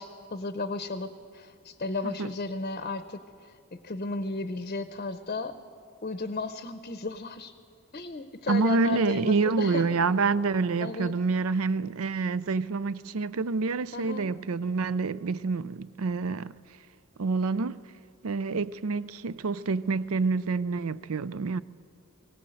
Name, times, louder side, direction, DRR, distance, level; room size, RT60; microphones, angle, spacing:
voice 1, 0.0-5.6 6.0-7.5 7.9-9.8 10.8-11.1 13.9-14.3, left 3 dB, 40° left, 0.7 m, -34 dB
voice 2, 8.5-16.5 17.2-17.8 18.2-21.6, right 4 dB, 75° right, 0.5 m, -27 dB
21.0 x 18.5 x 7.7 m
head